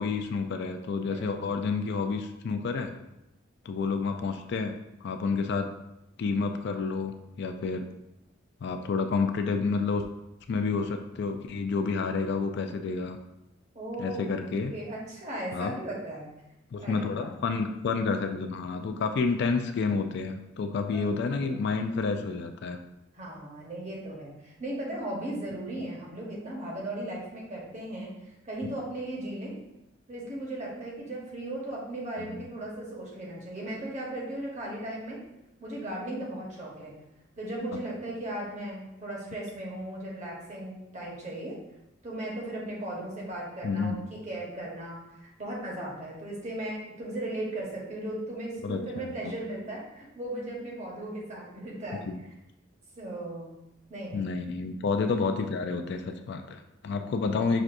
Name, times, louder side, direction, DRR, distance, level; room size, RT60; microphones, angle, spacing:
voice 1, 0.0-2.9 3.7-4.7 5.0-5.7 6.2-7.9 8.6-10.0 10.5-13.2 14.0-14.7 15.5-15.7 16.7-22.8 32.2-32.4 43.6-44.0 48.6-49.0 52.1-52.2 54.1-57.6, left 4 dB, 60° left, 6 dB, 0.3 m, -29 dB
voice 2, 13.7-14.4 14.7-16.3 16.8-17.3 20.9-21.7 23.2-28.1 28.4-29.6 30.1-35.2 35.6-36.9 37.4-41.6 42.0-52.1 53.0-53.5 53.9-54.3, right 1 dB, 35° right, -3 dB, 1.0 m, -37 dB
5.9 x 2.5 x 2.5 m, 0.88 s
head